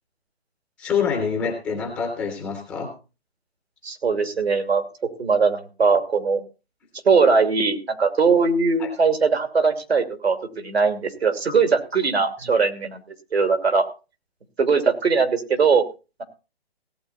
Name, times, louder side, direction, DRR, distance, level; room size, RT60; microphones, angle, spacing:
voice 1, 0.8-2.9 8.8-8.9, left 6 dB, 5° left, 1 dB, 0.5 m, -26 dB
voice 2, 3.8-4.8 5.2-6.4 7.0-13.0 13.3-13.9 14.6-15.8, right 5 dB, 85° right, 6 dB, 3.0 m, -20 dB
17.0 x 8.4 x 4.2 m, 0.32 s
hypercardioid pair, 155°, 31 cm